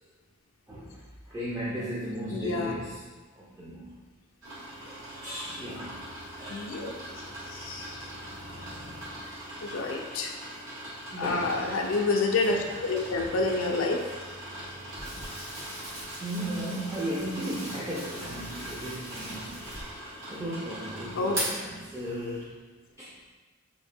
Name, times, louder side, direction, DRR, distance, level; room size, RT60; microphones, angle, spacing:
voice 1, 0.7-1.0 1.3-3.0 3.4-4.0 4.9-6.1 6.4-6.7 7.1-7.3 9.0-9.4 11.1-11.7 16.2-19.7 20.3-22.6 23.0-23.1, right 1 dB, 15° right, -7 dB, 0.4 m, -36 dB
voice 2, 2.3-2.8 6.5-6.9 7.5-8.0 9.6-10.4 11.2-14.0 21.2-21.4, left 3 dB, 70° left, 1 dB, 0.4 m, -28 dB
sound 1, 4.4-22.4, right 1 dB, 65° right, 1.3 m, -41 dB
Crackle, 14.6-20.1 20.3-20.5, equal, 85° right, 1.5 m, -44 dB
3.8 x 2.0 x 3.4 m, 1.3 s
head